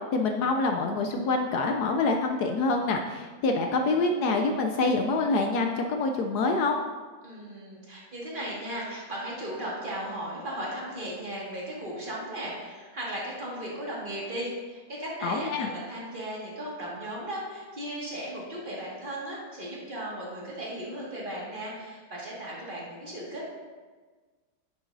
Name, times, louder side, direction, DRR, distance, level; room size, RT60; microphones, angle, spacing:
voice 1, 0.1-6.8 15.2-15.7, left 3 dB, 70° left, 4 dB, 1.0 m, -26 dB
voice 2, 7.2-23.4, right 1 dB, 30° right, -5 dB, 2.0 m, -36 dB
9.7 x 7.0 x 2.6 m, 1.4 s
omnidirectional pair, 2.0 m